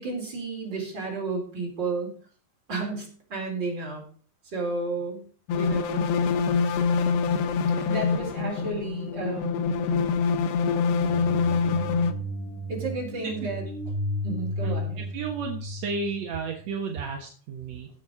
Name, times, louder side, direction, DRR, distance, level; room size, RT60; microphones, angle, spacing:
voice 1, 0.0-2.1 2.7-4.0 4.5-5.2 5.5-6.1 7.7-9.8 12.7-13.9 14.2-15.1, right 3 dB, 25° right, -1 dB, 4.4 m, -32 dB
sound 1, 5.5-12.1, left 5 dB, 80° left, 3.1 m, -25 dB
sound 2, 10.7-16.7, equal, 25° left, 2.7 m, -34 dB
voice 2, 15.1-17.9, right 4 dB, 60° right, 2 dB, 1.9 m, -32 dB
15.5 x 7.4 x 4.9 m, 0.43 s
omnidirectional pair, 4.8 m